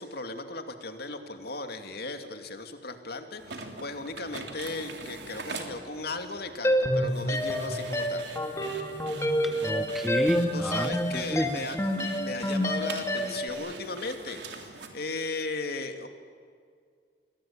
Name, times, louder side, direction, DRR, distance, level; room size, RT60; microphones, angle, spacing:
voice 1, 0.0-8.2 10.5-16.1, left 3 dB, 60° left, 7 dB, 2.6 m, -37 dB
sound 1, 3.4-14.9, right 4 dB, 75° right, 3.4 m, -43 dB
sound 2, 6.6-13.5, equal, 15° left, 2.6 m, -28 dB
voice 2, 9.4-11.6, equal, ahead, 10 dB, 1.0 m, -31 dB
28.5 x 23.0 x 9.0 m, 2.1 s
head